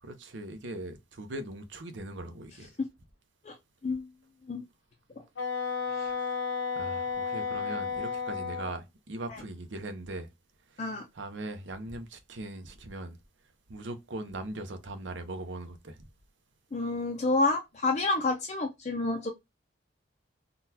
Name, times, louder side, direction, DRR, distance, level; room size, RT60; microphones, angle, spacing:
voice 1, 0.0-2.8 6.0-6.4 6.7-10.3 10.7-13.2 13.7-16.0, right 2 dB, 80° right, 0.7 m, -40 dB
Wind instrument woodwind instrument, 5.4-8.8, left 5 dB, 85° left, 0.9 m, -32 dB
voice 2, 16.7-19.3, left 3 dB, 40° left, 0.4 m, -29 dB
3.8 x 2.3 x 2.7 m
head